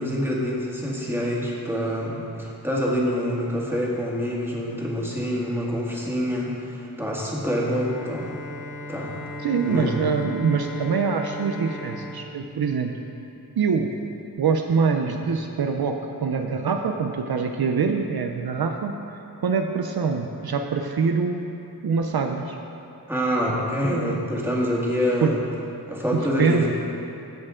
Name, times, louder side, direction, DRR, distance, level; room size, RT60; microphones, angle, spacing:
voice 1, 0.0-8.4 8.9-9.1 9.6-10.1 23.1-25.4 25.9-26.7, equal, 5° right, -4 dB, 1.8 m, -26 dB
Bowed string instrument, 7.4-13.5, left 1 dB, 65° left, 0.9 m, -38 dB
voice 2, 9.4-12.9 13.6-13.9 14.4-21.5 21.8-22.6 23.5-24.2 25.2-25.3 26.1-26.7, right 5 dB, 65° right, 4 dB, 0.5 m, -24 dB
15.0 x 6.6 x 3.7 m, 2.9 s
wide cardioid pair, 75°, 40 cm